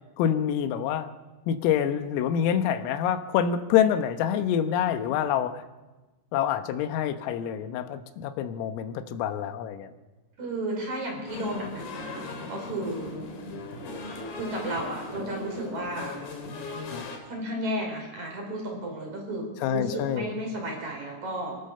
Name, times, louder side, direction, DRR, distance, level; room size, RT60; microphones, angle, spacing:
voice 1, 0.2-1.1 1.5-5.6 6.3-9.9 16.9-17.1 19.6-20.3, left 9 dB, 90° left, 9 dB, 3.8 m, -26 dB
voice 2, 10.4-13.1 14.4-16.2 17.2-21.6, right 1 dB, 35° right, 1 dB, 5.9 m, -33 dB
sound 1, 11.3-17.2, left 3 dB, 50° left, 4.0 m, -38 dB
28.0 x 15.5 x 6.7 m, 1.2 s
omnidirectional pair, 5.8 m